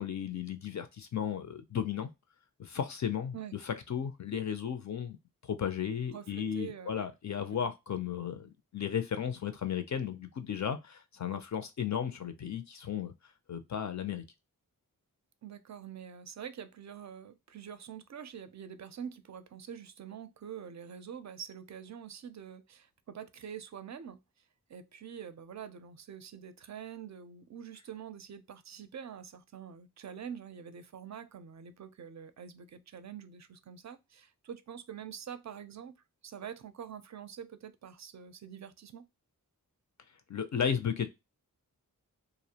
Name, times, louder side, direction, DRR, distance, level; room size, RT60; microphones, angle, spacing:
voice 1, 0.0-2.1 2.6-3.4 3.6-5.2 5.4-13.1 13.5-14.2 40.3-41.1, left 8 dB, 55° left, 0.4 m, -34 dB
voice 2, 6.1-7.1 7.6-7.7 15.4-24.2 24.7-35.9 36.2-39.0, right 8 dB, 50° right, 0.4 m, -45 dB
2.4 x 2.0 x 2.7 m
cardioid pair, 45°, 35 cm